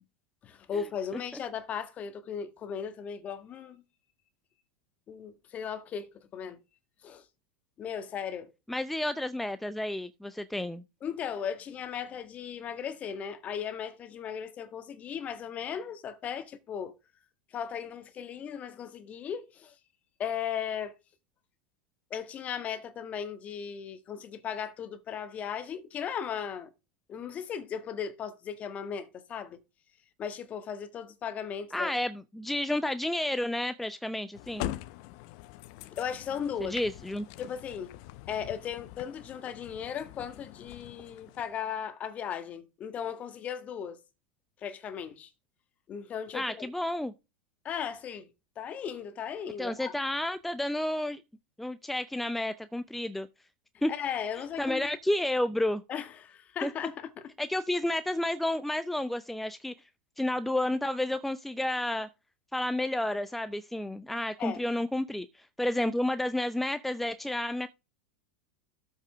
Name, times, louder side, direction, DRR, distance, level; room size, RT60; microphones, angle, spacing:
voice 1, 0.4-3.8 5.1-6.6 7.0-7.2 7.8-8.5 11.0-17.0 17.5-19.7 20.2-20.9 22.1-26.7 27.1-29.6 30.2-31.9 35.9-36.8 37.4-37.9 38.3-44.0 44.6-45.3 45.9-46.7 47.6-48.3 48.5-49.9 53.9-54.9 55.9-57.3 64.4-64.6, left 8 dB, 35° left, 1.7 m, -37 dB
voice 2, 8.7-10.8 31.7-34.7 36.6-37.3 46.3-47.1 49.6-51.2 51.6-53.3 53.8-53.9 54.6-55.8 56.6-56.7 57.4-59.7 60.2-62.1 62.5-67.7, left 1 dB, 5° left, 0.6 m, -31 dB
sound 1, 34.3-41.6, left 16 dB, 55° left, 0.7 m, -43 dB
13.0 x 5.4 x 3.5 m
figure-of-eight pair, 90°, 4 cm